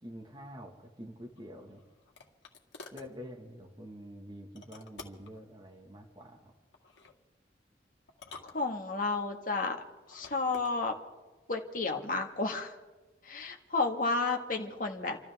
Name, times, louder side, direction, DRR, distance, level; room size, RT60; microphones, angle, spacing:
voice 1, 0.0-1.8 2.9-6.5, equal, 25° right, 0 dB, 1.7 m, -47 dB
sound 1, 1.4-3.1 4.6-5.4 6.7-7.2 8.1-9.1 10.0-10.7, left 4 dB, 90° left, 2.0 m, -51 dB
voice 2, 8.5-9.8 10.1-10.9 11.5-12.8 13.2-15.2, left 3 dB, 50° left, 3 dB, 1.8 m, -32 dB
30.0 x 13.5 x 3.6 m, 1.2 s
head